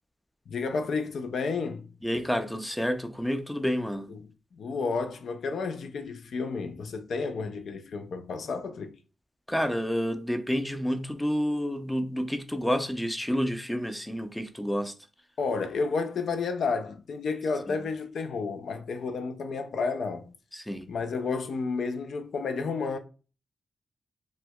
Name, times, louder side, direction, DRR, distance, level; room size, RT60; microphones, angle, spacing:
voice 1, 0.5-1.9 4.1-4.2 4.5-8.9 15.4-20.3 20.9-23.0, left 4 dB, 75° left, 0.4 m, -31 dB
voice 2, 2.0-4.1 9.5-14.9 17.7-17.8 20.5-20.9, equal, 5° left, 0.4 m, -29 dB
4.3 x 2.2 x 2.2 m
cardioid pair, 85°, 0 cm